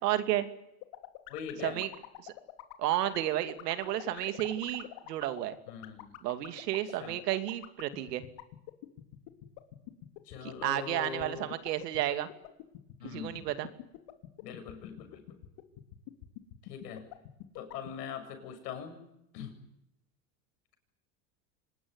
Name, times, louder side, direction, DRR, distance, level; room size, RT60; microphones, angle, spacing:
voice 1, 0.0-0.5 1.6-1.9 2.2-2.3 2.8-5.5 6.2-8.2 10.4-12.3 13.0-13.7, right 13 dB, 90° right, 10 dB, 2.6 m, -32 dB
sound 1, 0.8-17.9, left 19 dB, 60° left, 3.2 m, -44 dB
voice 2, 1.3-1.8 5.7-6.1 7.0-7.2 10.2-11.5 13.0-13.5 14.4-15.2 16.6-17.1 17.5-19.0 19.3-19.5, left 7 dB, 80° left, 7 dB, 7.5 m, -42 dB
26.0 x 20.5 x 9.7 m, 0.84 s
supercardioid pair, 115°, 47 cm